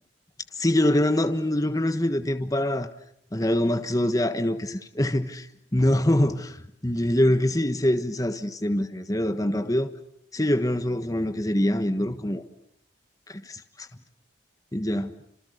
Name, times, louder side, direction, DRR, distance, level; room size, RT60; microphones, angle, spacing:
voice 1, 0.6-2.9 3.3-5.5 5.7-9.9 10.3-12.4 13.3-13.9 14.7-15.1, left 1 dB, 20° left, 1.4 m, -24 dB
30.0 x 27.0 x 6.7 m
head